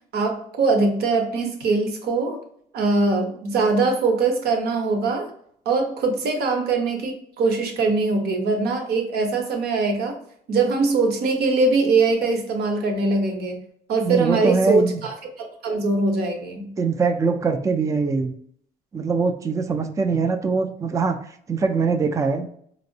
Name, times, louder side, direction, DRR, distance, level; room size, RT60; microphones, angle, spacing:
voice 1, 0.1-2.4 2.7-5.3 5.6-10.2 10.5-13.6 13.9-15.1 15.4-16.7, right 3 dB, 70° right, 3 dB, 0.9 m, -22 dB
voice 2, 14.0-15.0 16.8-18.3 18.9-21.2 21.5-22.5, right 4 dB, 20° right, 7 dB, 0.3 m, -22 dB
4.3 x 2.0 x 2.6 m, 0.65 s
cardioid pair, 110°, 17 cm